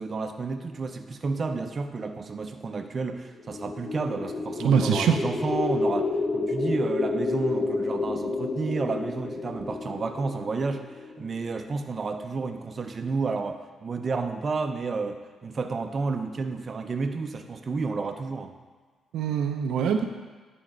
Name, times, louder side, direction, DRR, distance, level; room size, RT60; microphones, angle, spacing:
voice 1, 0.0-10.9 11.2-18.5, right 4 dB, 40° right, 5 dB, 0.5 m, -31 dB
sound 1, 3.3-11.5, left 3 dB, 40° left, 1.2 m, -30 dB
voice 2, 4.6-5.2 19.1-20.0, right 7 dB, 85° right, 5 dB, 0.5 m, -23 dB
9.9 x 4.3 x 3.9 m, 1.4 s
cardioid pair, 100°, 0 cm